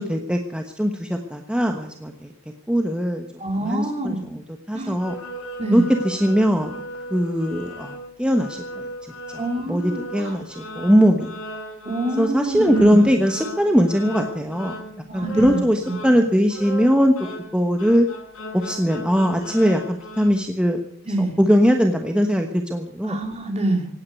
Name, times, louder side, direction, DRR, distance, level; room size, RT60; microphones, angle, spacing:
voice 1, 0.0-2.3 2.7-3.2 3.6-4.4 4.7-5.1 5.7-6.8 7.1-8.9 9.7-11.3 12.2-14.7 15.1-17.1 17.5-18.1 18.5-20.8 21.2-23.2, equal, 5° right, 4 dB, 1.2 m, -20 dB
voice 2, 3.4-4.2 4.7-5.0 5.6-5.9 9.4-10.4 11.8-13.1 15.1-16.1 21.1-21.4 23.0-23.9, right 2 dB, 30° right, 4 dB, 2.9 m, -26 dB
sound 1, 5.0-20.3, equal, 85° left, 6.3 m, -37 dB
17.0 x 9.7 x 8.2 m, 0.64 s
head